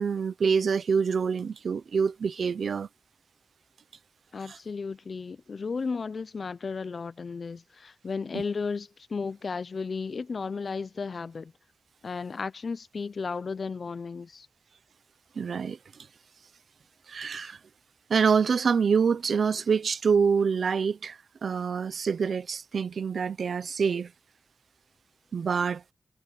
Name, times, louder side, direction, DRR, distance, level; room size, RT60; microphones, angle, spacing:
voice 1, 0.0-2.9 4.5-4.6 8.3-8.4 15.4-16.1 17.1-17.6 18.1-24.1 25.3-25.8, right 6 dB, 90° right, 0.8 m, -26 dB
voice 2, 4.3-11.5 12.0-14.5, left 4 dB, 65° left, 0.6 m, -34 dB
wide cardioid pair, 85°, 0 cm